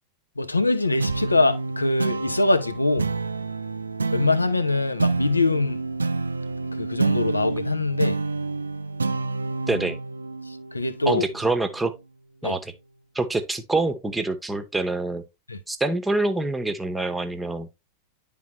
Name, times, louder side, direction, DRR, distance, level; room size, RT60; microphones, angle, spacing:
voice 1, 0.4-3.1 4.1-5.8 6.8-8.2 10.7-11.2 12.4-12.5 15.5-15.6, left 2 dB, 80° left, 0.7 m, -23 dB
sound 1, 1.0-11.8, right 3 dB, 75° right, 0.4 m, -28 dB
voice 2, 9.7-10.0 11.1-11.9 12.4-12.7 13.1-15.2 15.7-17.7, right 2 dB, 5° right, 0.9 m, -26 dB
10.5 x 3.7 x 3.0 m
figure-of-eight pair, 90°, 0 cm